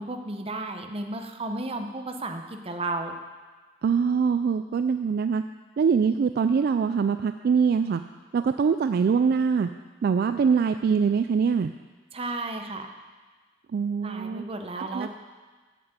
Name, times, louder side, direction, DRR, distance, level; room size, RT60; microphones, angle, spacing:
voice 1, 0.0-3.2 12.1-12.9 14.0-15.1, right 2 dB, 30° right, 5 dB, 0.9 m, -33 dB
voice 2, 3.8-5.4 5.8-8.0 8.3-9.7 10.0-11.7 13.7-14.4 14.8-15.1, right 6 dB, 55° right, 9 dB, 0.3 m, -23 dB
8.1 x 7.4 x 7.9 m, 1.4 s
head